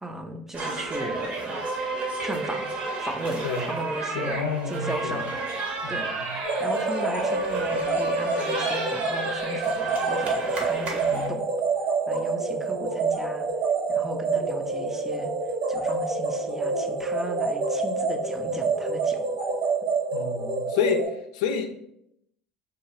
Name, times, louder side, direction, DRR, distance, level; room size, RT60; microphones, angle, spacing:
voice 1, 0.0-1.6 2.2-2.7 3.0-4.4 4.7-5.3 5.9-11.4 12.1-13.4 13.9-15.3 15.7-19.3, right 1 dB, 10° right, 4 dB, 0.5 m, -36 dB
sound 1, 0.5-11.3, right 3 dB, 45° right, 0.8 m, -31 dB
voice 2, 4.0-5.2 5.8-6.3 11.1-11.4 20.1-21.8, left 6 dB, 80° left, 6 dB, 0.3 m, -29 dB
sound 2, 6.4-21.1, right 3 dB, 65° right, 1.1 m, -27 dB
2.7 x 2.3 x 3.1 m, 0.76 s
hypercardioid pair, 75°, 3 cm